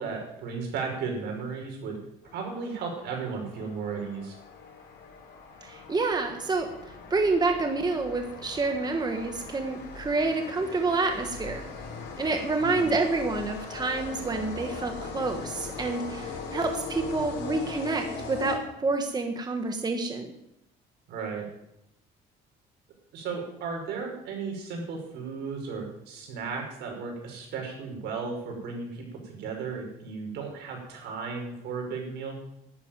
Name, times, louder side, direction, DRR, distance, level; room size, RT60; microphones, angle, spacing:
voice 1, 0.0-2.0 2.3-4.4 12.6-12.9 21.1-21.5 23.1-32.4, right 5 dB, 80° right, 1 dB, 5.6 m, -35 dB
sound 1, 2.2-19.1, left 5 dB, 75° left, 4.2 m, -40 dB
voice 2, 5.6-6.7 7.1-11.6 12.2-20.3, right 3 dB, 25° right, 4 dB, 1.7 m, -28 dB
11.5 x 9.7 x 9.2 m, 0.83 s
cardioid pair, 110°, 17 cm